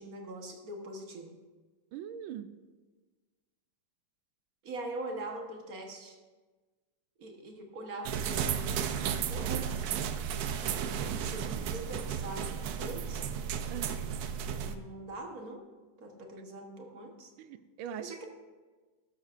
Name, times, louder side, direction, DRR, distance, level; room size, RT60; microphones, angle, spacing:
voice 1, 0.0-1.4 4.6-6.2 7.2-9.7 10.9-13.3 14.4-15.7 16.0-17.3 18.0-18.3, right 2 dB, 50° right, 3 dB, 1.5 m, -43 dB
voice 2, 1.9-2.5 13.7-14.0 17.4-18.3, right 9 dB, 90° right, 12 dB, 1.4 m, -41 dB
sound 1, 8.0-14.8, right 8 dB, 70° right, 0.9 m, -33 dB
12.5 x 11.5 x 2.5 m, 1.3 s
omnidirectional pair, 2.2 m